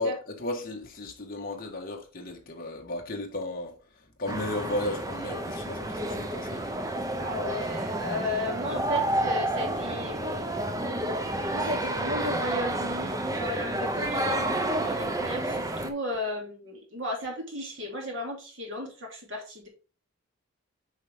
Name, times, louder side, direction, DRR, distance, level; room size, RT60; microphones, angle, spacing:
voice 1, 0.0-3.8 4.2-6.7 14.0-14.5, left 2 dB, 40° left, 1.5 m, -34 dB
sound 1, 4.3-15.9, right 1 dB, 15° right, 0.6 m, -30 dB
voice 2, 7.2-10.6 11.5-14.4 14.8-19.7, left 2 dB, 55° right, 2.9 m, -35 dB
8.1 x 4.9 x 3.6 m
head